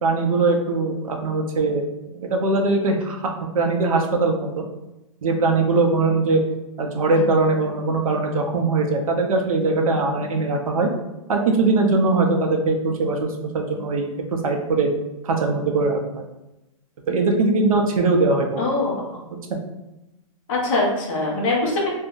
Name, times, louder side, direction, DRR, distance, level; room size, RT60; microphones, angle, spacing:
voice 1, 0.0-1.8 2.1-3.3 3.5-4.6 5.2-6.4 6.8-10.9 11.3-14.9 15.2-16.2 17.1-18.7 19.5-19.6, right 3 dB, 85° right, 3 dB, 0.7 m, -21 dB
voice 2, 18.6-19.2 20.5-21.9, left 2 dB, 20° left, -5 dB, 0.6 m, -23 dB
2.6 x 2.2 x 3.7 m, 0.97 s
hypercardioid pair, 175°, 17 cm